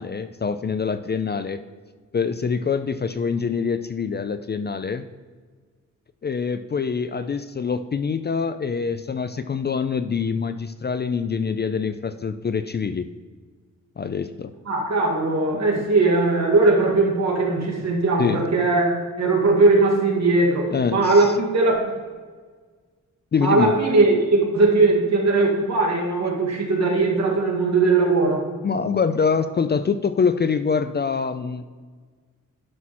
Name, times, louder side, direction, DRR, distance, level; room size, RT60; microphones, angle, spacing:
voice 1, 0.0-1.6 2.1-5.1 6.2-13.1 14.0-14.5 15.5-15.8 18.2-18.4 20.7-21.3 23.3-23.7 28.6-31.6, left 5 dB, 35° left, 11 dB, 0.4 m, -25 dB
voice 2, 14.7-21.9 23.4-28.5, right 3 dB, 60° right, -1 dB, 2.2 m, -19 dB
11.0 x 6.1 x 4.3 m, 1.5 s
wide cardioid pair, 140°, 31 cm